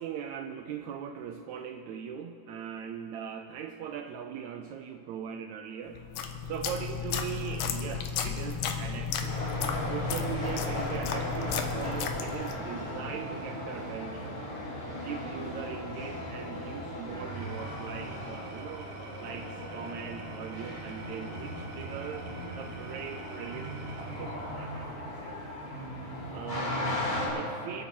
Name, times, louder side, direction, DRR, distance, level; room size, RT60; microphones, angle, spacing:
voice 1, 0.0-6.0 6.4-9.4 9.8-14.4 15.0-18.9 19.2-25.6 26.3-27.8, right 8 dB, 85° right, 7 dB, 1.6 m, -40 dB
sound 1, 6.0-12.7, left 6 dB, 80° left, 2.4 m, -33 dB
sound 2, 9.3-27.3, left 1 dB, 40° left, 4.5 m, -37 dB
Engine / Tools, 17.1-25.5, right 5 dB, 65° right, 1.9 m, -47 dB
26.5 x 9.2 x 4.4 m, 2.8 s
omnidirectional pair, 3.8 m